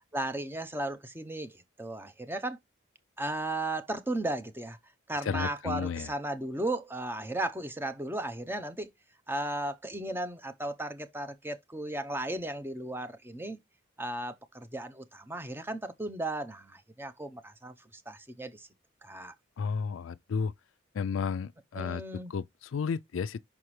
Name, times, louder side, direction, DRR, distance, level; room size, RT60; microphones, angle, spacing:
voice 1, 0.1-2.6 3.2-4.8 5.1-8.9 9.3-13.6 14.0-18.7 19.0-19.3 21.7-22.3, right 1 dB, 10° right, 0.7 m, -35 dB
voice 2, 5.2-6.1 19.6-20.5 20.9-22.0 22.3-23.4, left 6 dB, 75° left, 0.4 m, -32 dB
5.8 x 5.7 x 3.2 m
head